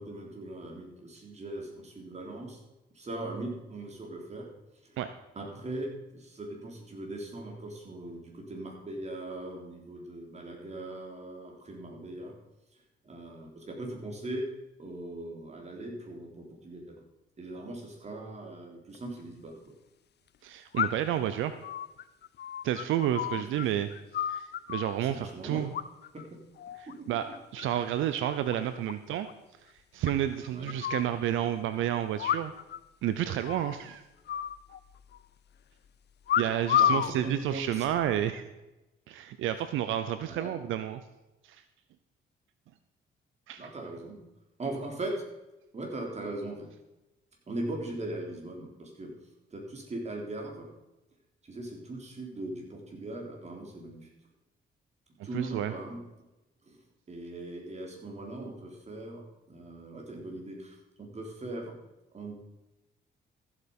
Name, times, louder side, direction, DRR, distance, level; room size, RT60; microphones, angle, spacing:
voice 1, 0.0-2.6 2.9-4.5 4.8-5.0 5.4-12.4 13.0-14.5 14.8-17.0 17.4-19.6 23.3-23.5 25.0-25.7 26.1-26.4 26.9-27.1 30.5-30.8 36.8-37.9 40.2-40.6 43.6-44.2 44.6-45.1 45.7-46.7 47.5-49.1 49.5-50.7 51.4-54.1 55.2-56.0 56.6-56.8 57.1-61.8 62.1-62.4, right 2 dB, 35° right, 1 dB, 3.7 m, -40 dB
sound 1, 18.9-19.0 20.7-21.2 21.6-23.7 23.9-24.9 25.7-26.3 26.6-26.9 27.3-27.9 28.2-28.3 28.5-28.6 28.9-29.0 29.3-29.4 30.1-31.1 32.2-32.8 33.0-33.1 33.4-33.8 34.3-35.2 36.3-37.1 37.9-38.2, left 10 dB, 60° left, 0.6 m, -30 dB
voice 2, 20.4-21.5 22.6-23.9 24.2-25.7 26.8-27.3 27.5-29.3 29.9-32.5 33.0-34.0 36.4-38.4 39.1-41.0 41.4-41.6 43.5-43.6 55.3-55.7, right 11 dB, 85° right, 11 dB, 0.7 m, -30 dB
14.5 x 8.1 x 5.4 m, 0.97 s
cardioid pair, 90°, 20 cm